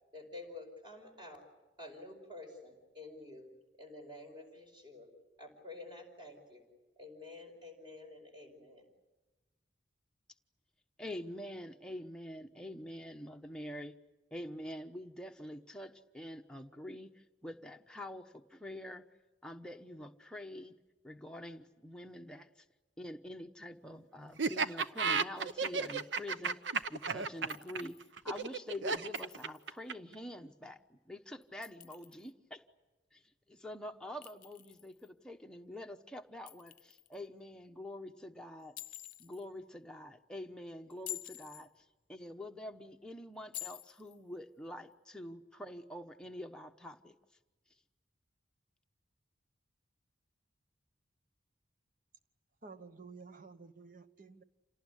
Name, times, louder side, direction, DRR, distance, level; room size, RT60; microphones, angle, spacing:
voice 1, 0.1-1.5 1.8-3.5 3.8-5.1 5.4-6.6 7.0-8.9, left 2 dB, 25° right, 4 dB, 5.2 m, -50 dB
voice 2, 11.0-13.9 14.3-19.0 19.4-22.6 23.0-28.0 28.2-32.6 33.1-47.2, left 1 dB, 5° left, 3 dB, 1.0 m, -46 dB
Laughter, 24.4-30.1, right 5 dB, 75° right, 0.8 m, -33 dB
Chink clink, 27.5-28.1 29.1-29.8 31.4-32.3 34.2-35.1 36.5-37.2 38.8-39.4 40.9-41.7 43.5-44.2, left 14 dB, 45° left, 0.8 m, -48 dB
voice 3, 52.6-54.4, right 4 dB, 45° right, 10 dB, 1.2 m, -52 dB
28.0 x 18.5 x 10.0 m, 1.2 s
head